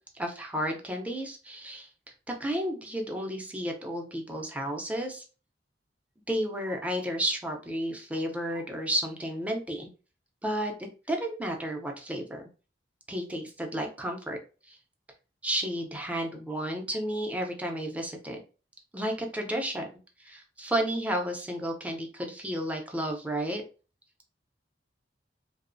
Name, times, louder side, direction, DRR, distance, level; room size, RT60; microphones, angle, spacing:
voice 1, 0.1-1.9 2.4-5.2 6.3-9.9 10.4-12.4 13.1-14.4 14.7-14.8 15.4-18.4 18.9-19.9 20.2-23.6, right 1 dB, 10° right, 2 dB, 0.5 m, -32 dB
2.8 x 2.0 x 2.5 m, 0.35 s
head